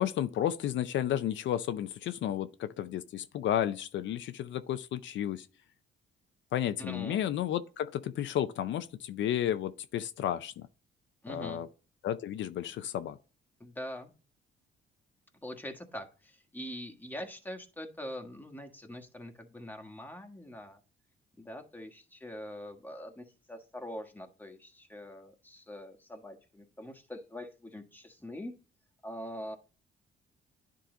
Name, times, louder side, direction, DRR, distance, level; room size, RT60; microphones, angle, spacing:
voice 1, 0.0-5.5 6.5-10.7 11.3-11.7 12.0-13.2, left 11 dB, 70° left, 0.5 m, -32 dB
voice 2, 6.8-7.2 11.2-11.6 13.6-14.1 15.4-20.8 21.4-28.6 29.0-29.6, left 1 dB, 10° left, 1.5 m, -43 dB
10.5 x 3.8 x 3.9 m
cardioid pair, 90°, 20 cm